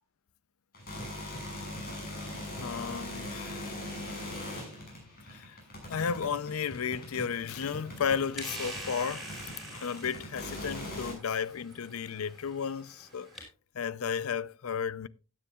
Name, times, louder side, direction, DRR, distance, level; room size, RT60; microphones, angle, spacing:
sound 1, 0.7-11.1, left 1 dB, 45° left, 6.7 m, -41 dB
voice 1, 2.6-3.9 4.5-4.6 5.3-5.6 5.9-13.5 13.7-15.1, left 6 dB, 90° left, 0.5 m, -34 dB
sound 2, 6.6-13.4, right 1 dB, ahead, 4.9 m, -46 dB
16.5 x 10.0 x 2.3 m
head